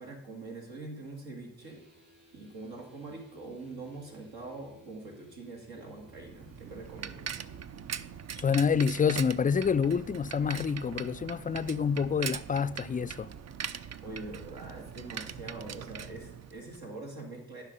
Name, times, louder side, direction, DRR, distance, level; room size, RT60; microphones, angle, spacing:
voice 1, 0.0-1.8 2.3-7.3 14.0-17.6, right 2 dB, 75° right, 2.5 m, -44 dB
sound 1, 1.6-11.0, equal, 25° right, 3.8 m, -59 dB
Bicycle, 6.0-16.9, right 7 dB, 45° right, 0.6 m, -41 dB
voice 2, 8.4-13.3, left 6 dB, 25° left, 0.3 m, -27 dB
11.0 x 5.8 x 5.4 m
supercardioid pair, 45°, 38 cm